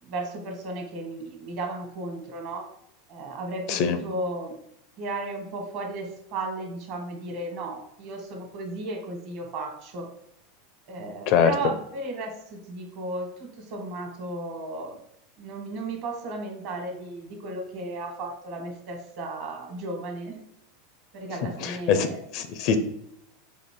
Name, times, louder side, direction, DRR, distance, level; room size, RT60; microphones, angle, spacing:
voice 1, 0.0-2.7 3.1-4.6 5.0-10.1 10.9-15.0 15.4-20.4 21.1-22.2, right 2 dB, 60° right, 2 dB, 1.3 m, -34 dB
voice 2, 21.6-22.1 22.3-22.8, left 7 dB, 55° left, 9 dB, 0.5 m, -22 dB
4.1 x 2.5 x 3.6 m, 0.75 s
hypercardioid pair, 110°, 0 cm